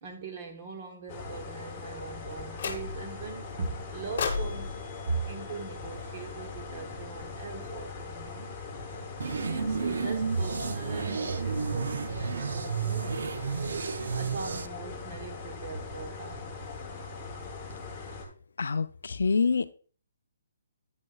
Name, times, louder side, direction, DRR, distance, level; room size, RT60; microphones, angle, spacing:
voice 1, 0.0-8.6 9.2-13.4 14.1-16.4, right 4 dB, 25° right, 1.0 m, -40 dB
sound 1, 1.1-18.2, left 4 dB, 10° left, 1.0 m, -41 dB
sound 2, 2.6-3.2 4.2-6.4, left 5 dB, 40° left, 1.0 m, -36 dB
sound 3, 9.2-14.7, right 5 dB, 65° right, 0.4 m, -31 dB
voice 2, 18.6-19.7, left 5 dB, 70° left, 0.5 m, -26 dB
9.1 x 6.3 x 2.3 m
hypercardioid pair, 180°, 0 cm